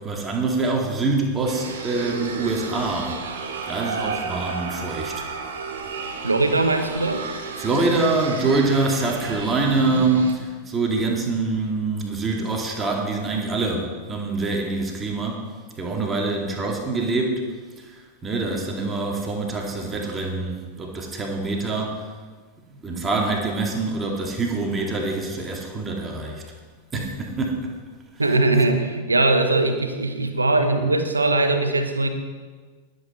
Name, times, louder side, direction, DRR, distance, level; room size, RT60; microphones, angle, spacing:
voice 1, 0.0-3.2 3.7-5.2 7.6-15.4 15.8-17.4 17.8-18.0 18.2-22.0 22.7-26.4 26.9-27.8, right 3 dB, 20° right, 0 dB, 2.2 m, -25 dB
sound 1, 1.5-10.4, right 5 dB, 60° right, 1.6 m, -32 dB
voice 2, 6.2-7.2 28.2-32.1, right 2 dB, 80° right, 7 dB, 1.2 m, -20 dB
20.0 x 8.1 x 4.3 m, 1.5 s
figure-of-eight pair, 90°, 0 cm